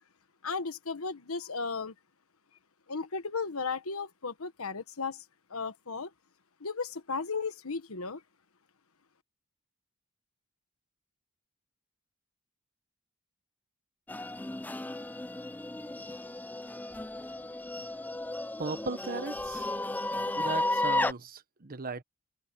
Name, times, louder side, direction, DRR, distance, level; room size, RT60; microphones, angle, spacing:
voice 1, 0.4-1.9 2.9-5.2 5.5-6.1 6.6-8.2, left 4 dB, 90° left, 1.3 m, -35 dB
sound 1, 14.1-21.1, left 2 dB, 10° left, 0.5 m, -34 dB
voice 2, 18.6-19.7 20.4-22.0, right 4 dB, 45° right, 1.1 m, -37 dB
open air
head